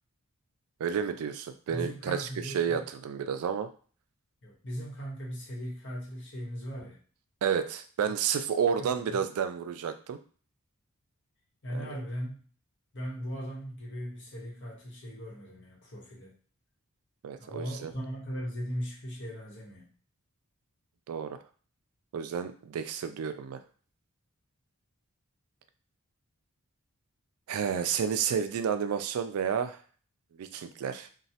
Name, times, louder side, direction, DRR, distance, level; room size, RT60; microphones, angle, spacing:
voice 1, 0.8-3.7 7.4-10.2 11.7-12.0 17.2-17.9 21.1-21.4 22.1-23.6 27.5-29.8 30.4-31.1, right 7 dB, 75° right, 9 dB, 0.3 m, -31 dB
voice 2, 1.7-2.9 4.4-7.0 8.8-9.2 11.6-12.4 12.9-16.3 17.4-19.9, equal, 55° left, -4 dB, 1.1 m, -38 dB
3.0 x 2.2 x 2.7 m, 0.41 s
head